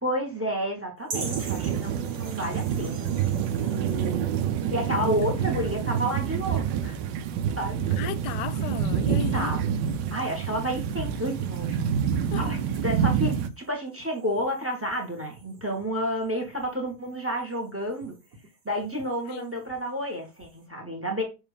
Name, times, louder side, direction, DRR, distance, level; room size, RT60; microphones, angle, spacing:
voice 1, 0.0-4.2 4.7-7.0 7.6-7.8 9.3-9.6 10.1-11.8 12.4-12.6 12.8-13.3 13.7-18.1 18.6-21.2, equal, 10° right, 1.4 m, -30 dB
sound 1, 1.0-20.7, right 3 dB, 65° right, 2.0 m, -48 dB
sound 2, 1.1-13.5, right 8 dB, 85° right, 1.3 m, -27 dB
voice 2, 7.9-9.5 12.3-12.5 12.7-12.8 19.3-19.5, left 11 dB, 75° left, 1.2 m, -35 dB
6.5 x 3.2 x 5.0 m
omnidirectional pair, 1.9 m